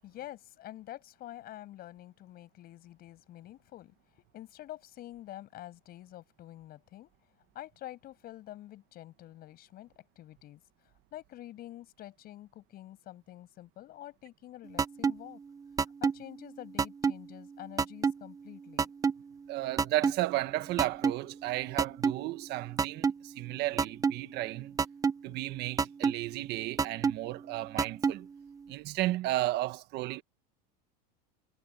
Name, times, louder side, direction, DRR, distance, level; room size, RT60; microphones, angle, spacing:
voice 1, 0.0-7.1 7.5-10.6 11.1-15.4 16.0-18.9, left 14 dB, 45° left, 7.3 m, -47 dB
sound 1, 14.8-15.1 15.8-16.1 16.8-17.1 17.8-18.1 18.8-19.1 19.8-20.1 20.8-21.1 21.8-22.1 22.8-23.1 23.8-24.1 24.8-25.1 25.8-26.1 26.8-27.1 27.8-28.1, right 5 dB, 15° right, 0.9 m, -25 dB
voice 2, 19.5-24.8 25.2-28.3 28.7-30.2, right 17 dB, 55° right, 1.5 m, -33 dB
supercardioid pair, 125°, 21 cm